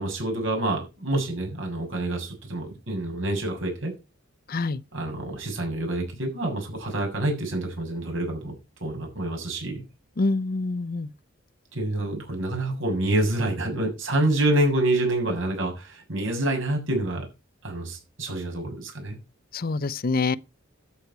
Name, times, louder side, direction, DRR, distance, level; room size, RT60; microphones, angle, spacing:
voice 1, 0.0-3.9 4.9-8.5 8.8-9.8 11.7-17.2 17.6-19.2, right 1 dB, 65° right, 7.1 m, -27 dB
voice 2, 4.5-4.8 10.2-11.1 19.5-20.4, left 3 dB, 45° left, 0.6 m, -26 dB
12.5 x 8.5 x 4.7 m
head